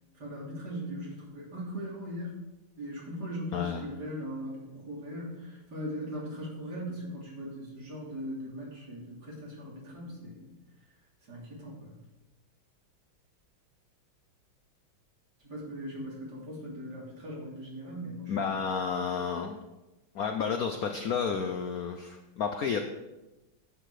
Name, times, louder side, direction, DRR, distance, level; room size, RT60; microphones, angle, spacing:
voice 1, 0.2-2.4 2.8-10.5 11.3-11.9 15.5-18.4, equal, 50° right, -4 dB, 3.5 m, -39 dB
voice 2, 3.5-3.9 18.3-19.6 20.1-22.8, left 6 dB, 65° left, 5 dB, 0.9 m, -31 dB
11.0 x 8.0 x 4.9 m, 1.0 s
omnidirectional pair, 2.2 m